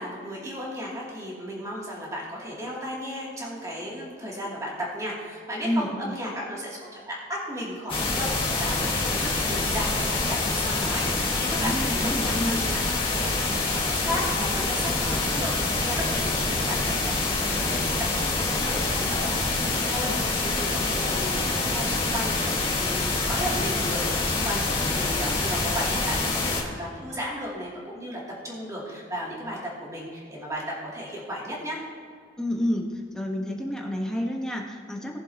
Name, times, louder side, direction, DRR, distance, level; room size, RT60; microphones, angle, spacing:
voice 1, 0.0-12.7 13.1-13.3 13.6-31.8, equal, 15° right, -5 dB, 2.7 m, -34 dB
voice 2, 5.6-6.2 11.5-12.6 32.4-35.2, equal, 5° left, -1 dB, 1.2 m, -29 dB
sound 1, 7.9-26.6, left 3 dB, 30° left, 1.7 m, -26 dB
18.5 x 7.3 x 2.9 m, 2.2 s
head